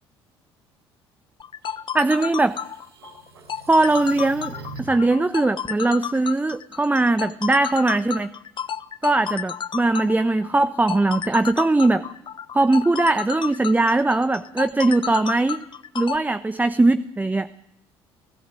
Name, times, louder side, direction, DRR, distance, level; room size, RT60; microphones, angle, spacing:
sound 1, 1.4-16.2, left 8 dB, 40° left, 1.1 m, -32 dB
sound 2, 1.6-5.1, right 3 dB, 80° right, 5.2 m, -43 dB
voice 1, 1.9-2.6 3.7-8.3 9.0-12.0 12.5-15.6 15.9-17.5, right 2 dB, 10° right, 12 dB, 1.1 m, -20 dB
29.0 x 17.5 x 9.2 m, 0.84 s
figure-of-eight pair, 55°, 13 cm